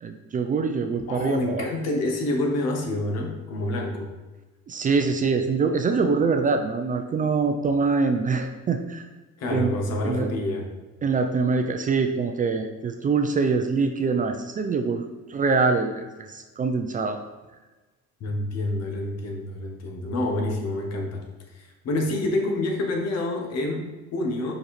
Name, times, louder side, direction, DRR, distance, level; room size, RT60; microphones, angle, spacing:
voice 1, 0.0-1.7 4.7-9.0 9.5-9.7 10.0-10.3 11.0-17.2, right 4 dB, 30° right, 6 dB, 0.4 m, -24 dB
voice 2, 1.1-4.1 9.4-10.7 18.2-21.2 21.6-24.5, left 1 dB, 60° left, 2 dB, 1.3 m, -27 dB
5.3 x 5.2 x 4.2 m, 1.2 s
cardioid pair, 160°, 29 cm